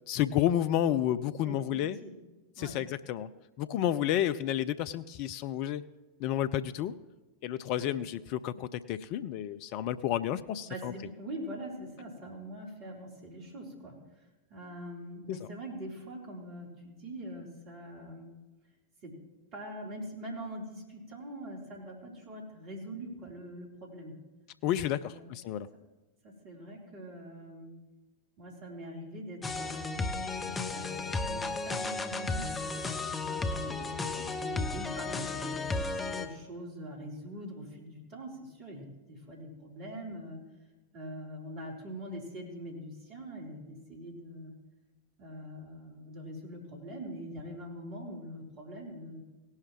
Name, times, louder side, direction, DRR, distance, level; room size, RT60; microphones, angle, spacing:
voice 1, 0.1-2.0 2.6-3.3 3.6-5.8 6.2-6.9 7.4-10.9 15.3-15.4 24.6-25.7, left 11 dB, 45° left, 14 dB, 0.4 m, -31 dB
voice 2, 1.4-2.2 2.6-2.8 7.8-8.0 10.6-18.3 19.0-19.2 19.5-24.1 24.8-25.3 26.2-27.8 28.4-35.6 36.2-40.4 40.9-44.5 45.2-49.2, equal, 40° right, -1 dB, 3.7 m, -43 dB
sound 1, 29.4-36.3, left 3 dB, 15° left, 0.8 m, -34 dB
17.5 x 11.0 x 3.1 m, 1.1 s
figure-of-eight pair, 90°, 0 cm